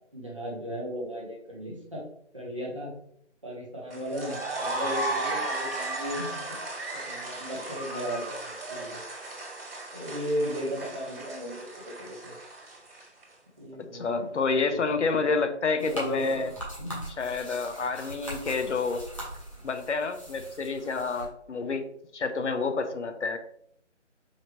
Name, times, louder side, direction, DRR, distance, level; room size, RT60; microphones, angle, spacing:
voice 1, 0.0-2.0 2.3-2.9 3.4-6.6 6.9-9.0 9.9-12.3 13.6-14.4 14.7-15.3 15.8-16.4 16.8-17.0, equal, 25° right, -4 dB, 0.8 m, -36 dB
sound 1, 3.9-13.2, right 2 dB, 50° right, 1.4 m, -35 dB
voice 2, 13.8-16.5 17.2-19.0 19.6-21.9 22.1-23.4, left 4 dB, 70° left, 8 dB, 0.6 m, -29 dB
sound 2, 15.8-21.3, right 1 dB, 25° left, 0.9 m, -41 dB
4.8 x 2.2 x 2.9 m, 0.67 s
figure-of-eight pair, 170°, 36 cm